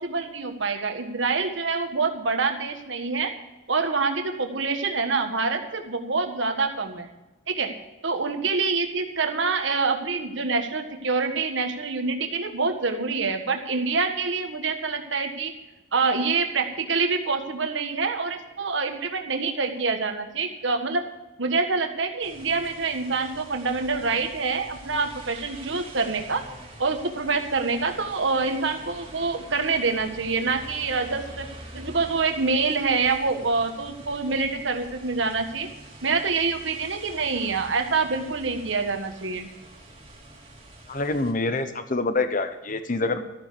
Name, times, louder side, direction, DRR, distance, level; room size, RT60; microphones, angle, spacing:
voice 1, 0.0-3.3 3.7-7.1 7.5-7.7 8.0-15.5 15.9-21.0 21.4-26.4 26.8-31.5 31.7-35.7 36.0-39.5, right 4 dB, 65° right, 5 dB, 1.5 m, -26 dB
sound 1, 22.2-41.3, right 1 dB, 25° right, 2.7 m, -45 dB
voice 2, 40.9-43.2, left 3 dB, 40° left, 9 dB, 0.9 m, -26 dB
13.5 x 9.5 x 6.8 m, 1.0 s
head